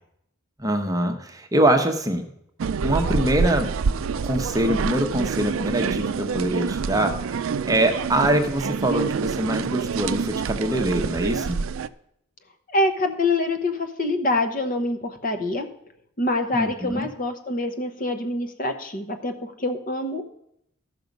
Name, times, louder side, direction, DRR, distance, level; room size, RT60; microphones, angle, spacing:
voice 1, 0.6-2.2 2.8-3.7 4.2-7.1 7.6-11.6 16.5-17.1, right 1 dB, 15° right, 5 dB, 0.8 m, -23 dB
sound 1, 2.6-11.9, right 5 dB, 75° right, 0.4 m, -27 dB
voice 2, 12.7-15.7 16.2-20.3, left 2 dB, 40° left, 7 dB, 0.9 m, -25 dB
14.5 x 6.0 x 5.2 m, 0.76 s
head